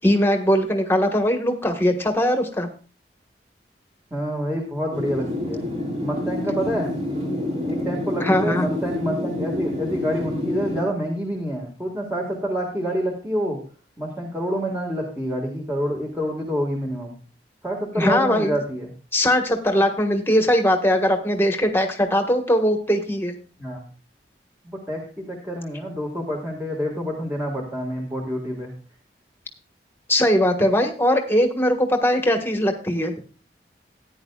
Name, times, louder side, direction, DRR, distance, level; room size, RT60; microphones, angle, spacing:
voice 1, 0.0-2.7 8.2-8.7 18.0-18.6 19.1-23.3 30.1-33.1, equal, 15° left, 5 dB, 1.4 m, -20 dB
voice 2, 4.1-5.6 6.0-6.9 7.6-13.6 14.0-17.1 17.6-18.9 23.6-23.8 24.6-28.7, equal, 15° right, -1 dB, 1.8 m, -27 dB
sound 1, 4.9-10.8, left 1 dB, 35° right, 2.6 m, -28 dB
15.0 x 9.9 x 2.4 m, 0.37 s
head